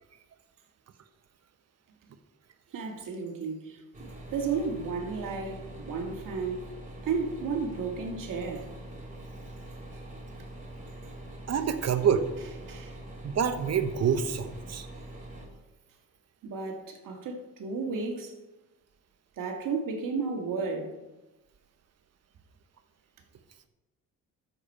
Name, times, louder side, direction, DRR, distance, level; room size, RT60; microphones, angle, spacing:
voice 1, 2.7-3.8 4.3-6.7 7.0-8.7 12.7-12.9 16.4-18.3 19.4-20.9, right 4 dB, 65° right, 2.1 m, -33 dB
sound 1, 3.9-15.5, right 1 dB, 20° right, 3.2 m, -44 dB
voice 2, 11.5-12.3 13.2-14.9, right 7 dB, 45° right, 1.1 m, -27 dB
13.0 x 7.0 x 4.4 m
cardioid pair, 85°, 35 cm